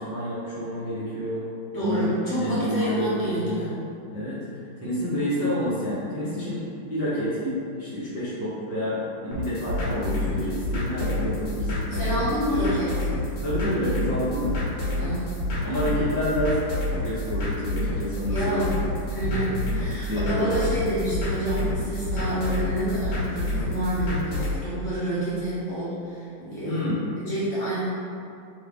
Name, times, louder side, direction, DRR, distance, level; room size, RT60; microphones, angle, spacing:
voice 1, 0.0-1.4 1.8-3.6 4.1-4.4 4.8-12.1 13.4-14.9 15.6-16.6 16.9-18.7 19.3-19.5 19.9-20.6 26.6-27.0, equal, 15° right, -12 dB, 0.6 m, -28 dB
voice 2, 1.7-3.8 11.9-13.1 14.9-15.4 18.3-18.8 19.1-26.8 27.1-27.8, equal, 45° left, -11 dB, 1.3 m, -28 dB
sound 1, 9.3-24.6, left 1 dB, 90° left, 1.9 m, -28 dB
3.7 x 3.3 x 3.6 m, 2.5 s
omnidirectional pair, 2.0 m